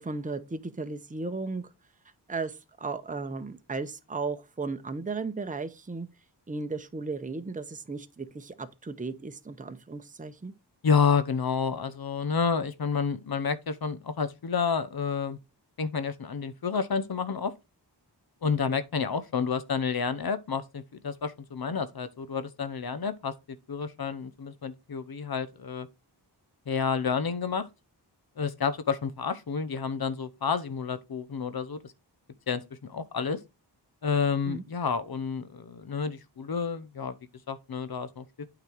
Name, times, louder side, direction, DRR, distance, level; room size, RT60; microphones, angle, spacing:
voice 1, 0.0-1.7 2.3-6.1 6.5-10.5 34.5-34.6, right 3 dB, 20° right, 0.8 m, -35 dB
voice 2, 10.8-15.4 15.8-17.5 18.4-25.9 26.7-27.7 28.4-31.9 32.5-32.6 32.9-33.4 34.0-37.2 37.5-38.2, left 6 dB, 60° left, 0.9 m, -29 dB
8.8 x 4.0 x 4.6 m
wide cardioid pair, 80°, 42 cm